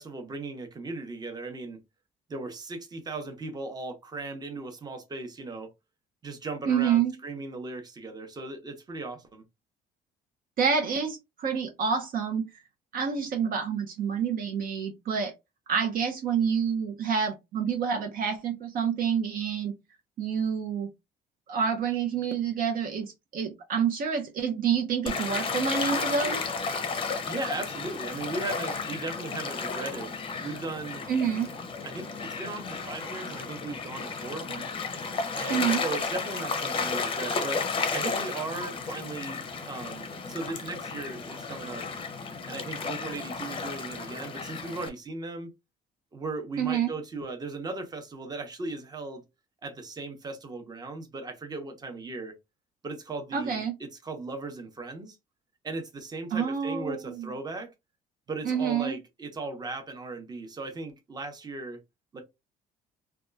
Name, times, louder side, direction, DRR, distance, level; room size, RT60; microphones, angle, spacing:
voice 1, 0.0-1.8 2.3-5.7 6.2-9.4 27.3-31.0 31.8-34.7 35.3-39.4 39.7-41.9 42.5-45.5 46.1-49.2 49.6-52.3 52.8-55.2 55.6-57.7 58.3-61.8 62.1-62.2, right 3 dB, 25° right, 0.7 m, -37 dB
voice 2, 6.7-7.1 10.6-12.4 12.9-15.3 15.7-19.7 20.2-20.9 21.5-26.4 31.1-31.5 35.5-35.8 46.6-46.9 53.3-53.7 56.3-57.2 58.4-58.9, right 7 dB, 55° right, 0.5 m, -28 dB
Gull seagull / Waves surf, 25.1-44.9, left 4 dB, 30° left, 0.6 m, -33 dB
2.8 x 2.2 x 2.3 m
cardioid pair, 110°, 17 cm